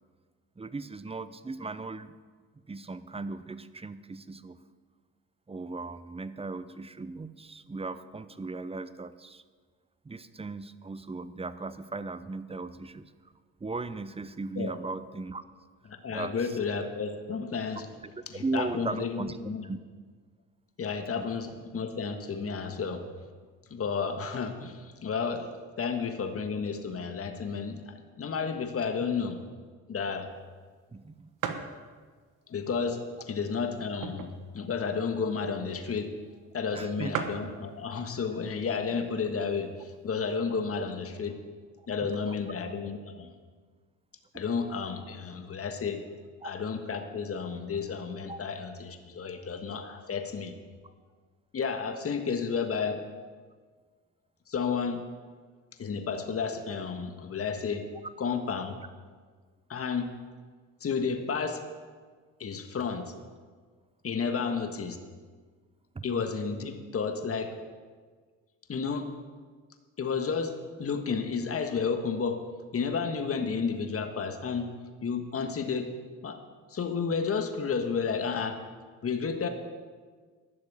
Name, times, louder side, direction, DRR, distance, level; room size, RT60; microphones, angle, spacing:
voice 1, 0.6-2.2 2.7-4.6 5.5-9.4 10.0-13.1 13.6-15.4 16.1-16.6 18.2-19.4 19.6-19.8 21.1-21.3 30.9-31.3 36.7-37.2 38.1-38.2 41.8-41.9 42.3-42.4 44.3-44.4 46.4-46.5 48.3-48.4 65.9-66.0, right 3 dB, 15° right, 14 dB, 0.7 m, -37 dB
voice 2, 16.0-17.9 18.3-19.7 20.8-23.0 23.7-25.5 25.8-29.4 29.9-30.3 32.5-36.1 36.5-41.4 41.9-43.4 44.3-46.0 46.4-50.5 51.5-53.0 54.5-55.0 55.8-57.8 58.2-58.8 59.7-60.1 60.8-61.6 62.4-63.1 64.0-65.0 66.0-67.5 68.7-69.1 70.0-72.4 72.7-74.7 75.0-75.9 76.2-76.4 76.7-78.6 79.0-79.5, left 5 dB, 45° left, 6 dB, 1.6 m, -32 dB
sound 1, 30.4-30.5 30.9-31.0 31.4-31.8 32.4-32.5 33.3-34.5 34.8-34.9 35.1-35.4 36.1-36.2 36.5-36.6 36.8-36.9 37.1-37.5 38.4-38.7 39.3-39.4 39.6-40.4, right 7 dB, 70° right, 1.1 m, -36 dB
12.5 x 6.6 x 8.6 m, 1.5 s
supercardioid pair, 60°, 33 cm